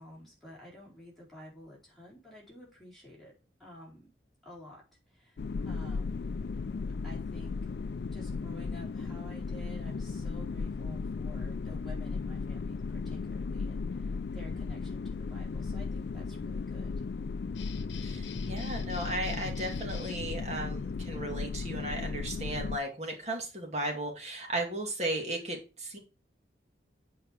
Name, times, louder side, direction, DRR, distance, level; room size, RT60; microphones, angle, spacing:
voice 1, 0.0-3.3 3.6-4.1 4.4-4.8 5.1-5.4 5.6-6.2 7.0-7.6 8.1-16.9, left 1 dB, ahead, -6 dB, 4.7 m, -51 dB
sound 1, 5.4-22.8, left 4 dB, 65° left, 0.4 m, -36 dB
sound 2, 17.5-20.3, left 5 dB, 85° left, 0.9 m, -45 dB
voice 2, 18.0-26.0, right 1 dB, 35° right, 1 dB, 2.4 m, -35 dB
8.4 x 5.4 x 4.8 m, 0.32 s
head